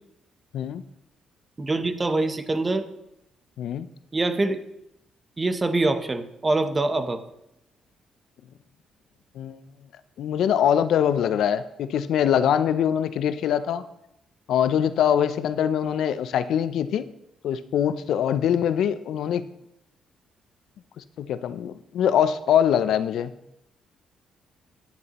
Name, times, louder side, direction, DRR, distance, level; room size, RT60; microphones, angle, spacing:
voice 1, 1.6-2.9 4.1-4.6 5.4-7.2, right 2 dB, 25° right, 9 dB, 0.8 m, -24 dB
voice 2, 10.2-13.8 14.5-17.0 17.4-19.4 21.0-23.3, left 9 dB, 75° left, 12 dB, 0.5 m, -23 dB
9.8 x 9.4 x 3.0 m, 0.84 s
cardioid pair, 90°, 0 cm